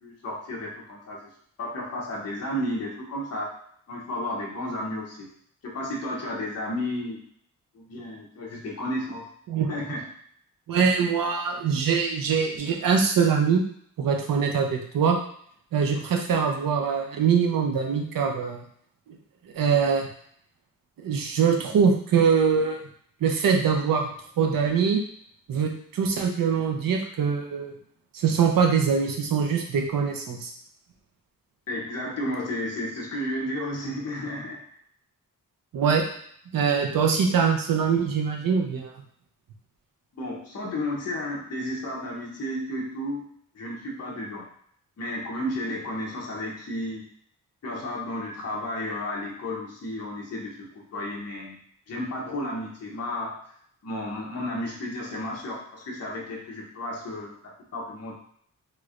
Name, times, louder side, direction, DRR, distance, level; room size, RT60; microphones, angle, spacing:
voice 1, 0.0-1.3 1.6-3.5 3.9-5.3 5.6-7.2 7.7-9.3 9.7-10.0 31.7-34.6 40.1-43.2 43.5-44.4 45.0-47.0 47.6-51.6 51.9-53.4 53.8-58.2, left 1 dB, 50° left, -3 dB, 0.8 m, -32 dB
voice 2, 10.7-13.6 14.0-15.2 15.7-18.6 19.5-20.1 21.0-22.8 23.2-24.1 24.4-25.0 25.5-27.7 28.1-30.5 35.7-36.0 36.5-38.9, right 6 dB, 85° right, 2 dB, 0.6 m, -23 dB
3.1 x 3.1 x 2.4 m, 0.64 s
wide cardioid pair, 175°, 33 cm